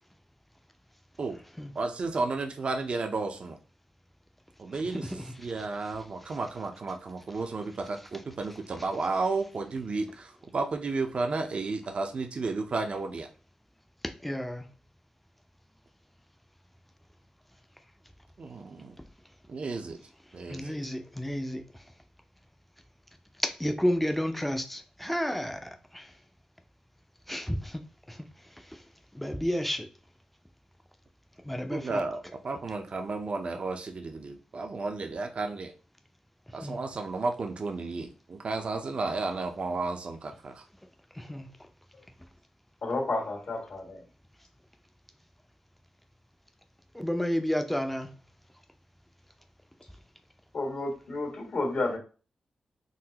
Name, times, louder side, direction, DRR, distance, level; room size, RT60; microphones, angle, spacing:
voice 1, 1.7-3.6 4.6-13.3 18.4-18.9 19.5-20.0 20.3-20.7 31.7-35.7 36.5-40.6, right 3 dB, 55° right, 0.5 m, -33 dB
voice 2, 4.9-5.4 14.2-14.7 20.5-21.6 23.4-26.1 27.3-27.8 28.1-28.2 29.1-29.9 31.4-32.0 36.6-36.8 41.2-41.5 46.9-48.1, equal, 5° left, 0.5 m, -31 dB
voice 3, 42.8-44.0 50.5-52.0, left 2 dB, 70° left, 1.7 m, -31 dB
3.9 x 2.1 x 2.8 m
cardioid pair, 55°, 2 cm